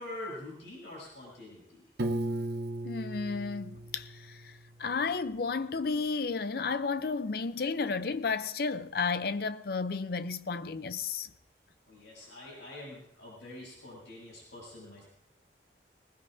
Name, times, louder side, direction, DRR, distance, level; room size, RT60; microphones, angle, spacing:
voice 1, 0.0-1.8 11.9-15.0, left 1 dB, 90° left, 7.2 m, -45 dB
Piano, 2.0-4.9, right 1 dB, 65° right, 0.9 m, -36 dB
voice 2, 2.8-4.5 4.8-11.3, left 4 dB, 55° left, 0.5 m, -32 dB
20.0 x 19.5 x 2.6 m
head